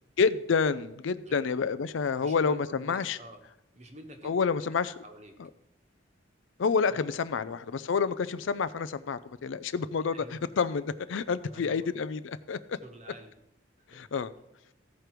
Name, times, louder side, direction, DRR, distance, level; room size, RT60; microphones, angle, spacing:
voice 1, 0.2-3.2 4.2-5.0 6.6-12.8 13.9-14.3, left 5 dB, 80° left, 14 dB, 0.5 m, -29 dB
voice 2, 2.2-3.4 3.7-4.8 5.0-5.4 7.4-7.6 10.1-10.4 11.4-11.9 12.8-13.3 13.8-13.9, right 1 dB, 35° right, 5 dB, 1.2 m, -49 dB
15.0 x 5.0 x 4.6 m, 0.85 s
head